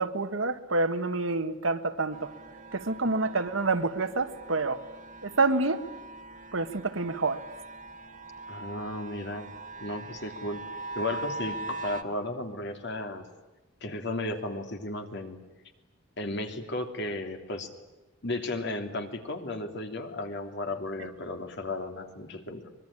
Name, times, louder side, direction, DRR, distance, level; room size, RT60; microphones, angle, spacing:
voice 1, 0.0-2.3 2.7-4.8 5.2-5.8 6.5-7.4, right 3 dB, 80° right, 8 dB, 1.7 m, -28 dB
sound 1, 2.1-12.0, right 3 dB, 40° right, 1.5 m, -42 dB
voice 2, 8.5-9.5 9.8-10.6 10.9-13.3 13.8-15.4 16.2-17.7 18.2-22.7, left 2 dB, 60° left, 5 dB, 3.0 m, -34 dB
24.5 x 22.0 x 10.0 m, 1.1 s
head